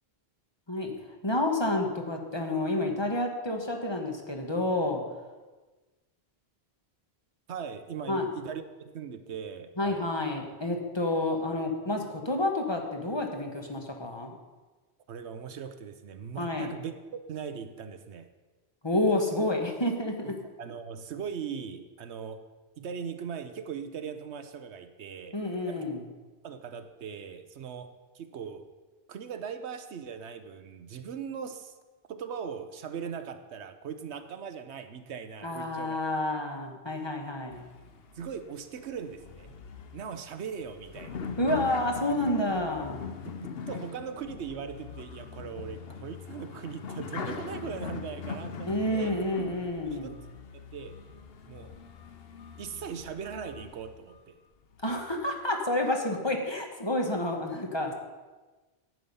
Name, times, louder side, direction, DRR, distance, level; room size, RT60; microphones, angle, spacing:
voice 1, 1.2-5.0 8.1-8.3 9.8-14.4 16.4-16.7 18.8-20.3 25.3-26.0 35.4-37.6 41.4-43.0 48.7-50.1 54.8-57.9, left 1 dB, 25° left, 2 dB, 1.3 m, -29 dB
voice 2, 7.5-10.1 15.1-18.3 20.3-20.4 20.6-22.5 22.8-25.4 25.7-25.8 26.4-28.7 29.1-31.7 32.1-36.0 38.1-39.5 39.9-41.2 43.4-49.2 49.8-50.1 50.5-51.0 51.5-51.8 52.6-54.4, right 7 dB, 90° right, 9 dB, 1.1 m, -39 dB
sound 1, 37.5-54.2 54.7-55.3, left 5 dB, 65° left, 1.0 m, -42 dB
11.0 x 8.5 x 5.4 m, 1.3 s
omnidirectional pair, 1.1 m